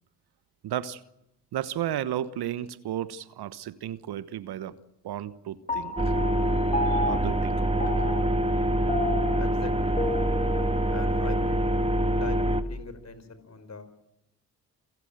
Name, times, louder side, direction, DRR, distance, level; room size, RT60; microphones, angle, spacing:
voice 1, 0.6-1.0 1.5-4.7 5.0-6.0 6.8-7.8, right 11 dB, 55° right, 1.2 m, -33 dB
Piano, 5.7-12.4, left 2 dB, 15° left, 2.6 m, -33 dB
sound 1, 6.0-12.6, right 1 dB, 15° right, 2.0 m, -25 dB
voice 2, 9.3-10.0 10.9-11.6 12.1-14.1, left 4 dB, 35° left, 4.8 m, -41 dB
28.5 x 15.0 x 9.0 m
hypercardioid pair, 45°, 45 cm